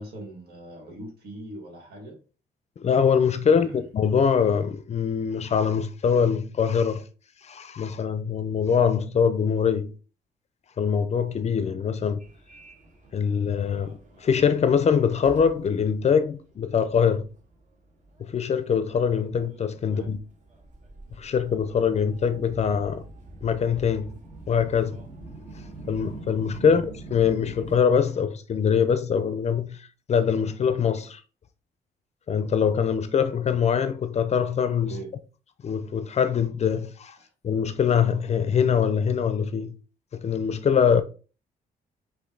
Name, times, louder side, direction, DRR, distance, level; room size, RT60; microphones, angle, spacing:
voice 1, 0.0-2.2 3.5-3.8 19.8-20.1 26.6-26.8 34.9-35.1 37.2-37.3, right 1 dB, 75° right, 2.0 m, -40 dB
voice 2, 2.8-7.0 7.4-9.9 10.8-12.2 13.1-17.3 18.2-20.2 21.2-23.0 23.4-24.2 24.5-25.0 25.9-31.2 32.3-35.0 35.6-37.2 37.4-39.7 40.1-41.0, left 7 dB, 40° left, 0.5 m, -23 dB
Subway metro underground, 12.2-27.8, right 2 dB, 50° right, 1.3 m, -45 dB
5.2 x 2.7 x 3.8 m
cardioid pair, 105°, 17 cm